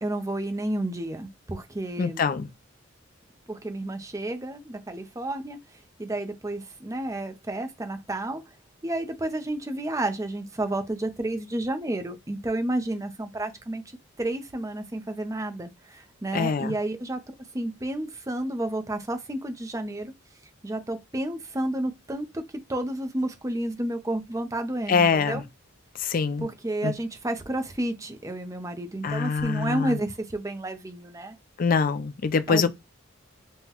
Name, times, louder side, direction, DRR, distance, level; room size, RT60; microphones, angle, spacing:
voice 1, 0.0-2.3 3.5-8.4 8.8-13.8 14.2-17.2 17.5-20.1 20.6-25.4 26.4-31.4 32.5-32.7, right 1 dB, 15° right, 0.6 m, -31 dB
voice 2, 2.0-2.5 16.3-16.7 24.9-25.4 26.0-26.5 26.8-26.9 29.0-30.0 31.6-32.7, left 5 dB, 45° left, 0.4 m, -24 dB
5.4 x 2.2 x 2.9 m
head